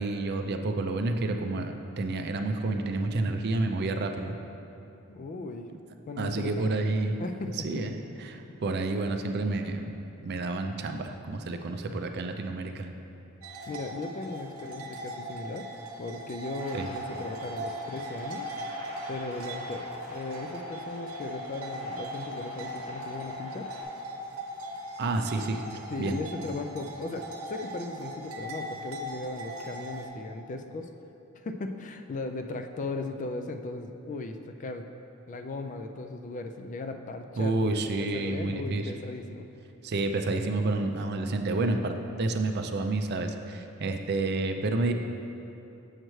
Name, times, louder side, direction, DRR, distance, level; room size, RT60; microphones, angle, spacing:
voice 1, 0.0-4.3 6.2-7.1 7.6-9.9 10.2-12.9 16.7-16.9 25.0-25.6 26.0-26.2 37.4-38.9 39.8-44.9, right 2 dB, 50° right, 5 dB, 0.4 m, -29 dB
voice 2, 5.1-5.7 6.1-6.7 7.2-7.5 13.7-15.7 16.0-18.5 19.1-23.7 25.9-30.9 31.4-34.9 35.3-37.5 38.0-39.5, left 3 dB, 35° left, 6 dB, 0.3 m, -37 dB
sound 1, 13.4-30.1, right 1 dB, 85° right, 0.8 m, -40 dB
sound 2, 16.6-23.8, left 2 dB, 90° left, 1.6 m, -44 dB
7.5 x 6.5 x 3.1 m, 2.8 s
head